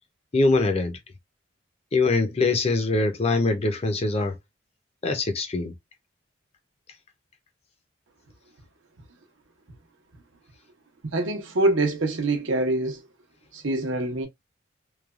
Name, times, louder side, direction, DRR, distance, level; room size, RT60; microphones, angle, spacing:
voice 1, 0.3-1.0 1.9-4.4 5.0-5.7, left 3 dB, 30° left, 0.5 m, -23 dB
voice 2, 11.1-13.1 13.5-14.3, right 2 dB, 75° right, 0.8 m, -25 dB
3.1 x 2.2 x 2.3 m
head